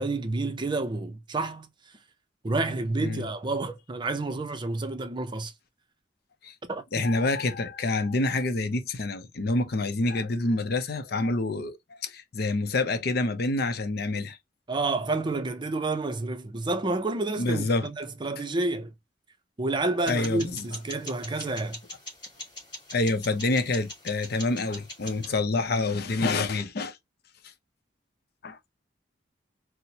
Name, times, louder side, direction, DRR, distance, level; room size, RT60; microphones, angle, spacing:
voice 1, 0.0-1.7 2.4-5.5 6.7-7.1 14.7-18.9 19.6-21.8, right 2 dB, 25° right, 0.5 m, -29 dB
voice 2, 6.9-14.4 17.4-17.9 20.1-20.7 22.9-27.0 27.4-27.5 28.4-28.6, left 2 dB, 60° left, 0.6 m, -27 dB
sound 1, 20.1-25.4, left 1 dB, 30° left, 2.5 m, -43 dB
4.3 x 2.1 x 2.8 m
head